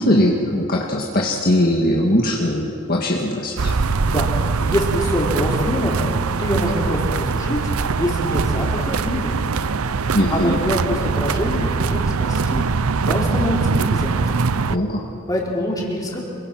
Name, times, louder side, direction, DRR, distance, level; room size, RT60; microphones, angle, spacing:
voice 1, 0.0-3.7 10.1-10.6 14.7-15.0, left 1 dB, 45° left, -1 dB, 2.0 m, -20 dB
sound 1, 3.6-14.8, right 4 dB, 90° right, 0.7 m, -22 dB
voice 2, 4.6-7.7 8.0-9.5 10.3-12.7 13.1-14.5 15.3-16.2, equal, 15° left, -3 dB, 4.1 m, -25 dB
28.0 x 22.5 x 6.1 m, 2.6 s
head